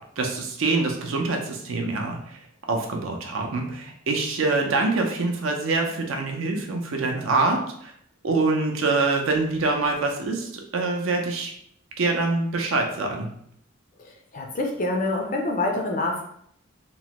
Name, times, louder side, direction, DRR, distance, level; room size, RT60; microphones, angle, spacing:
voice 1, 0.2-2.4 2.7-7.9 8.2-11.5 12.0-13.3, right 3 dB, 70° right, 2 dB, 0.5 m, -25 dB
voice 2, 14.3-16.2, left 2 dB, 40° left, 1 dB, 0.4 m, -26 dB
2.9 x 2.1 x 2.9 m, 0.69 s
head